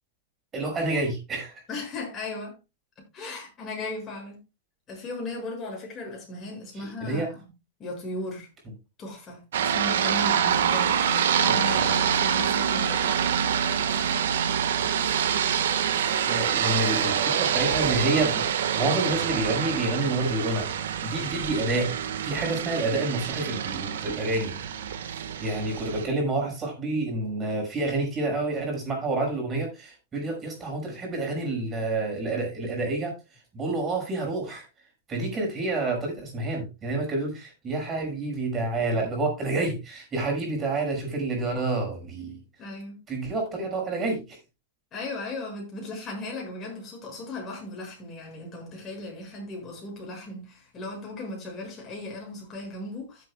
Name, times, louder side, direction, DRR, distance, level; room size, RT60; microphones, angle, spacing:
voice 1, 0.5-1.6 6.8-7.3 11.5-11.9 16.3-18.4 18.7-21.9 22.2-24.6 25.4-33.1 33.5-34.7 35.1-42.4 43.1-44.4, right 2 dB, 20° right, 6.1 m, -28 dB
voice 2, 1.7-2.6 3.1-4.4 4.9-7.4 7.8-8.5 9.0-13.4 42.6-43.0 44.9-53.2, left 2 dB, 25° left, 6.9 m, -36 dB
sound 1, 9.5-26.1, right 8 dB, 85° right, 1.6 m, -26 dB
15.5 x 8.3 x 2.3 m
supercardioid pair, 150°, 0 cm